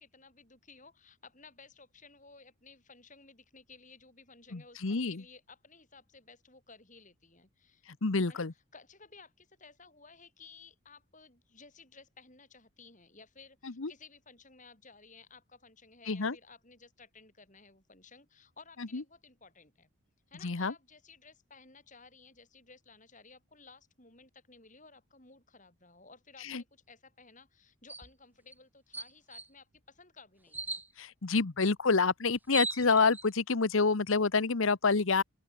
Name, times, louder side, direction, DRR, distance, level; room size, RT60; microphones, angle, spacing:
voice 1, 0.0-7.9 8.3-19.9 20.3-30.8, left 4 dB, 35° left, 8.0 m, -56 dB
voice 2, 4.5-5.2 8.0-8.5 13.6-13.9 16.1-16.4 18.9-19.0 20.4-20.7 26.4-26.6 31.0-35.2, left 4 dB, 65° left, 1.0 m, -28 dB
sound 1, 27.9-28.1 28.5-28.6 28.9-29.5 30.5-30.9 32.0-32.1 32.3-33.3, right 3 dB, 10° right, 0.8 m, -37 dB
open air
head